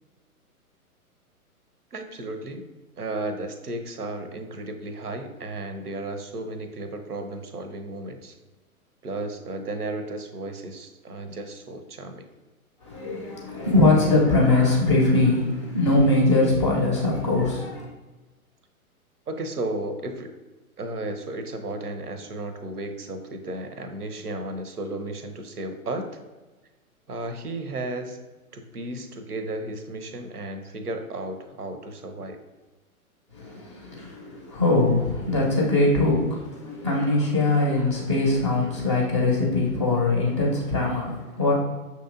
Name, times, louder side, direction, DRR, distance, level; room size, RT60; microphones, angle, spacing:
voice 1, 1.9-2.6 3.0-8.4 9.0-12.3 19.3-20.3 20.8-26.1 27.1-28.2 28.5-32.4, right 2 dB, 90° right, 8 dB, 0.6 m, -34 dB
voice 2, 12.8-17.9 33.3-41.5, left 2 dB, 20° left, -2 dB, 0.5 m, -22 dB
6.0 x 2.8 x 2.5 m, 1.2 s
figure-of-eight pair, 115°, 45 cm